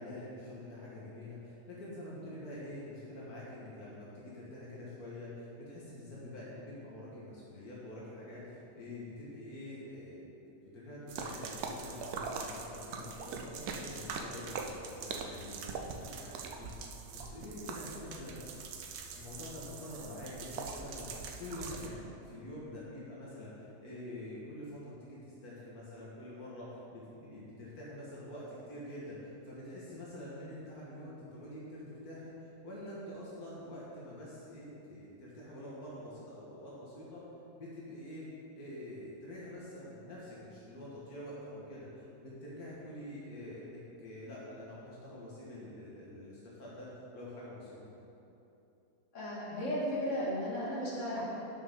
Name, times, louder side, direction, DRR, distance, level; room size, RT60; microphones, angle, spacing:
voice 1, 0.0-10.4 10.7-16.8 17.1-18.4 19.1-37.2 37.5-38.3 38.6-47.8, left 1 dB, 85° left, -7 dB, 2.0 m, -46 dB
sound 1, 11.1-21.9, right 4 dB, 85° right, 1.2 m, -42 dB
voice 2, 49.1-51.2, equal, 55° left, -8 dB, 2.3 m, -35 dB
11.5 x 5.6 x 3.8 m, 2.8 s
omnidirectional pair, 1.6 m